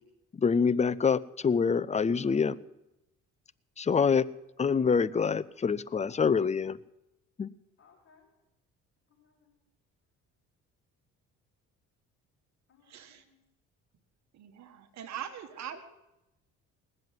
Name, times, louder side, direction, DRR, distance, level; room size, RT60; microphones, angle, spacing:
voice 1, 0.4-2.6 3.8-4.2 4.6-6.8 7.4-7.5, left 6 dB, 25° left, 17 dB, 0.6 m, -26 dB
voice 2, 7.8-8.3 9.1-9.5 12.7-13.4 15.1-15.7, left 5 dB, 40° left, -5 dB, 5.7 m, -61 dB
voice 3, 12.9-13.2 14.3-15.8, right 9 dB, 65° right, 8 dB, 1.6 m, -42 dB
19.5 x 7.8 x 9.3 m, 0.91 s
cardioid pair, 85°, 29 cm